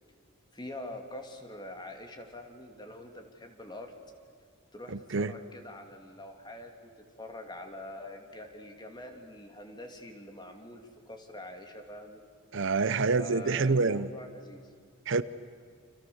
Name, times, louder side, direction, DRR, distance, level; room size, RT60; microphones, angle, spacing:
voice 1, 0.5-3.9 4.7-12.2 13.1-14.7, left 1 dB, 20° left, 4 dB, 2.7 m, -45 dB
voice 2, 4.9-5.3 12.5-14.1 15.1-15.2, right 4 dB, 65° right, 14 dB, 0.7 m, -27 dB
29.0 x 27.5 x 7.1 m, 2.1 s
head